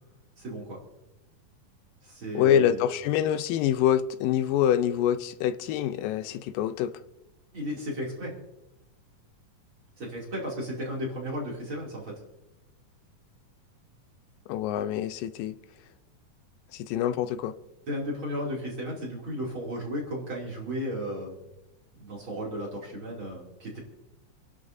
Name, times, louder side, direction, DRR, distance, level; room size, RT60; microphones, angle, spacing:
voice 1, 0.4-0.8 2.0-2.9 7.5-8.3 10.0-12.1 17.9-21.4 22.0-23.8, equal, 40° right, 3.3 m, -34 dB
voice 2, 2.3-6.9 14.5-15.5 16.7-17.5, left 10 dB, 85° left, 2.3 m, -25 dB
28.0 x 11.0 x 2.7 m
omnidirectional pair, 3.9 m